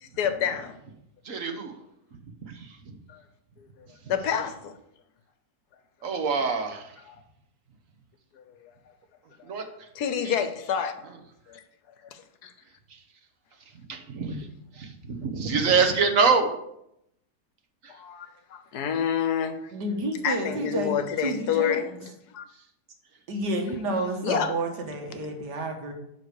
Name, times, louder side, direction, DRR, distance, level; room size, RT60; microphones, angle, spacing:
voice 1, 0.0-0.8 3.1-3.2 3.6-3.7 4.1-4.7 7.1-7.2 8.3-8.4 9.9-10.9 11.5-11.6 12.1-12.5 14.3-14.4 17.9-19.6 20.2-22.4 24.2-24.5, left 8 dB, 75° left, 9 dB, 1.3 m, -28 dB
voice 2, 1.2-1.8 2.4-3.0 6.0-6.9 9.4-9.6 12.9-13.0 13.9-14.5 14.7-16.5 17.8-17.9, right 5 dB, 55° right, 6 dB, 1.4 m, -25 dB
voice 3, 19.7-21.8 23.3-25.9, right 1 dB, 90° right, 3 dB, 1.9 m, -30 dB
11.5 x 4.1 x 4.7 m, 0.78 s
omnidirectional pair, 1.7 m